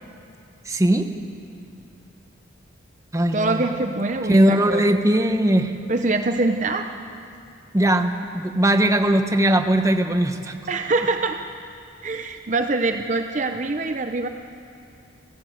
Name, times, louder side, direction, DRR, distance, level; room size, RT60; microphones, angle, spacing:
voice 1, 0.6-1.1 3.1-3.6 4.2-5.7 7.7-10.6, right 1 dB, 15° right, 6 dB, 1.0 m, -20 dB
voice 2, 3.3-4.8 5.9-6.9 10.7-11.4 12.0-14.3, right 2 dB, 40° right, 6 dB, 0.7 m, -24 dB
29.0 x 14.5 x 7.8 m, 2.6 s
head